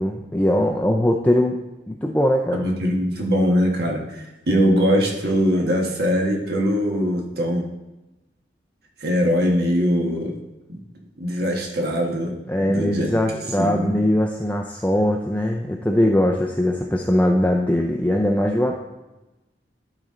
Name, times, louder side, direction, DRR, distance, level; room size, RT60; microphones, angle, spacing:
voice 1, 0.0-1.6 1.9-2.7 4.5-4.7 12.5-18.8, left 1 dB, 10° left, 1 dB, 0.5 m, -21 dB
voice 2, 2.5-7.7 9.0-10.4 10.7-10.8 11.2-12.3 12.6-13.1 13.6-14.0, equal, 65° right, 0 dB, 1.4 m, -22 dB
12.0 x 4.2 x 3.7 m, 1.0 s
head